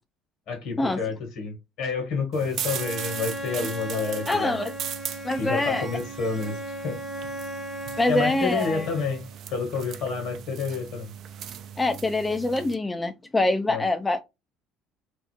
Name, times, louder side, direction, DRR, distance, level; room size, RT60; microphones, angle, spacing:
voice 1, 0.5-4.6 5.3-6.6 6.8-7.0 8.1-9.2 9.5-11.1 13.7-13.8, left 5 dB, 65° left, 1.5 m, -29 dB
sound 1, 2.3-12.7, right 8 dB, 55° right, 0.4 m, -39 dB
Bowed string instrument, 2.6-9.3, right 1 dB, 15° right, 0.8 m, -36 dB
voice 2, 4.3-4.7 5.2-5.9 8.0-8.9 11.8-14.2, left 2 dB, 15° left, 0.3 m, -25 dB
2.8 x 2.0 x 3.2 m
hypercardioid pair, 65°, 0 cm